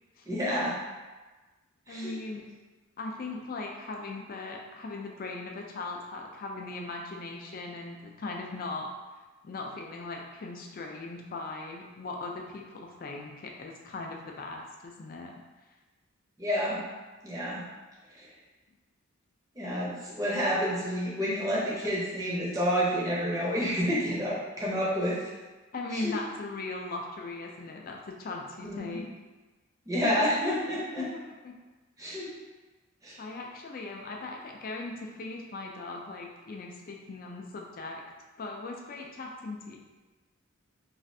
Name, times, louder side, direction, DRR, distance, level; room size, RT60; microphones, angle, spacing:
voice 1, 0.3-0.8 1.9-2.1 16.4-16.8 17.2-17.6 18.1-18.2 19.6-25.2 25.9-26.1 28.6-29.0 29.9-31.0 32.0-32.3 33.0-33.2, equal, 15° right, -7 dB, 0.7 m, -29 dB
voice 2, 1.9-2.5 3.0-8.9 9.4-15.3 25.7-29.1 31.0-31.5 33.2-38.0 38.4-39.8, left 3 dB, 40° left, 0 dB, 0.4 m, -39 dB
3.1 x 2.4 x 2.6 m, 1.2 s
head